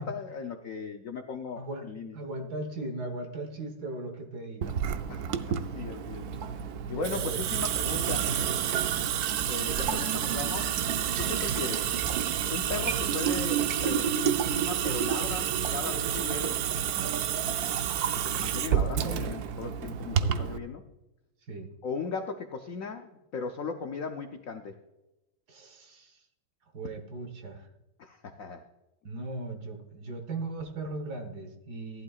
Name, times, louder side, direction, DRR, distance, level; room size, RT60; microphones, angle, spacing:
voice 1, 0.0-2.2 5.1-6.3 6.9-8.4 9.5-10.8 11.2-11.9 12.5-16.6 18.2-20.8 21.8-24.8 28.0-28.7, left 4 dB, 85° left, 6 dB, 0.7 m, -37 dB
voice 2, 1.6-1.9 2.1-4.8 7.0-7.5 9.8-10.1 21.5-21.7 25.5-26.2 26.7-27.7 29.0-32.0, right 2 dB, 50° right, 5 dB, 1.6 m, -38 dB
Water tap faucet / Sink (filling or washing) / Drip, 4.6-20.6, right 9 dB, 80° right, 0.8 m, -29 dB
15.0 x 11.5 x 2.4 m, 0.98 s
omnidirectional pair, 2.4 m